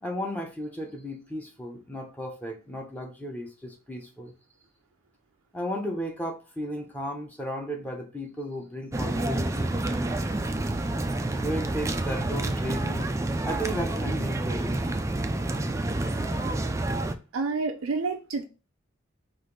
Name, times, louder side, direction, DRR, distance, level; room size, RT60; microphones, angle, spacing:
voice 1, 0.0-4.3 5.5-9.7 11.4-13.1 13.4-14.9, equal, 10° left, 0.8 m, -35 dB
sound 1, 8.9-17.1, right 2 dB, 15° right, 0.3 m, -28 dB
voice 2, 17.3-18.4, right 4 dB, 90° right, 0.5 m, -28 dB
4.9 x 2.6 x 3.8 m
head